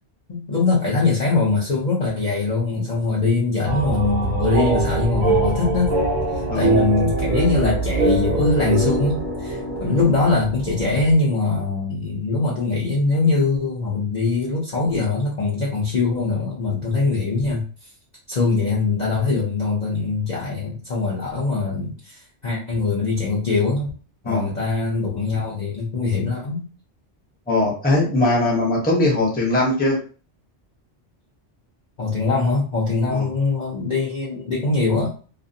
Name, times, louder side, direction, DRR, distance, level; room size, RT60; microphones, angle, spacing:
voice 1, 0.3-5.9 6.5-17.6 18.3-23.9 24.2-26.6 32.0-35.1, left 3 dB, 45° left, -5 dB, 0.6 m, -22 dB
sound 1, 3.6-11.1, right 3 dB, 50° right, 0.7 m, -23 dB
voice 2, 27.5-30.0 33.1-33.3, left 2 dB, 10° left, -4 dB, 0.7 m, -20 dB
2.5 x 2.4 x 2.6 m, 0.38 s
omnidirectional pair, 1.2 m